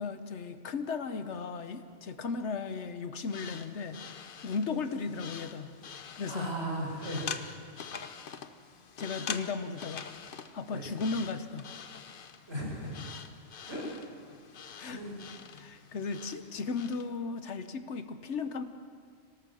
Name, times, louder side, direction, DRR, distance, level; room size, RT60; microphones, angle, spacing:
voice 1, 0.0-4.0 4.4-5.7 6.2-6.5 9.0-10.1 10.5-11.7 14.8-15.0 15.5-18.6, left 4 dB, 70° left, 10 dB, 1.3 m, -35 dB
sound 1, 3.2-17.1, left 6 dB, 50° left, 0.9 m, -45 dB
voice 2, 6.3-7.2 10.7-10.8 12.5-12.9 13.7-13.8 14.9-15.2, right 1 dB, 65° right, -3 dB, 6.5 m, -36 dB
25.5 x 18.0 x 6.3 m, 2.1 s
omnidirectional pair, 1.2 m